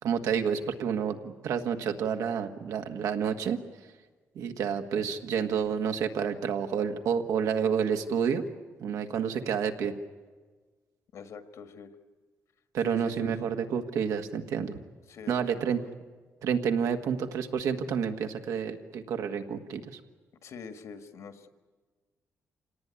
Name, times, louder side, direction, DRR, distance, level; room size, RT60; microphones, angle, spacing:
voice 1, 0.0-3.6 4.3-8.4 8.8-9.9 12.7-14.7 15.3-15.8 16.4-20.0, right 7 dB, 85° right, 6 dB, 1.6 m, -29 dB
voice 2, 11.1-12.0 12.8-13.4 15.1-15.7 20.4-21.5, left 5 dB, 65° left, 9 dB, 1.7 m, -45 dB
26.5 x 18.0 x 9.8 m, 1.4 s
cardioid pair, 120°, 6 cm